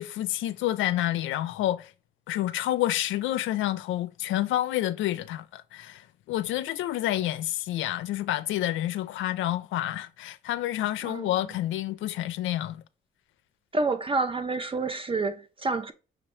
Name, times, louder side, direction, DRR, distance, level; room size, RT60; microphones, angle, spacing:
voice 1, 0.0-1.9 2.3-12.8, left 14 dB, 80° left, 0.4 m, -29 dB
voice 2, 13.7-15.9, right 3 dB, 25° right, 0.5 m, -28 dB
6.0 x 2.9 x 3.1 m
cardioid pair, 90°, 20 cm